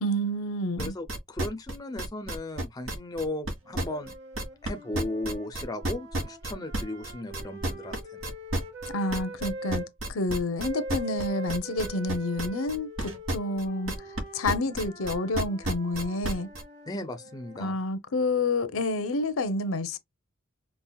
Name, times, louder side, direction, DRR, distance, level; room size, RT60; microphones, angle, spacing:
voice 1, 0.0-0.9 8.9-13.9 14.3-16.5 17.6-20.0, left 2 dB, 75° left, 0.7 m, -29 dB
voice 2, 0.8-4.1 4.6-8.2 16.9-17.8, left 1 dB, 20° left, 0.5 m, -36 dB
sound 1, 0.8-4.7 4.9-14.2 14.4-16.6, right 1 dB, 85° right, 1.7 m, -31 dB
sound 2, 3.6-9.9 10.6-17.7, right 1 dB, 55° right, 2.1 m, -42 dB
5.4 x 2.4 x 2.3 m
head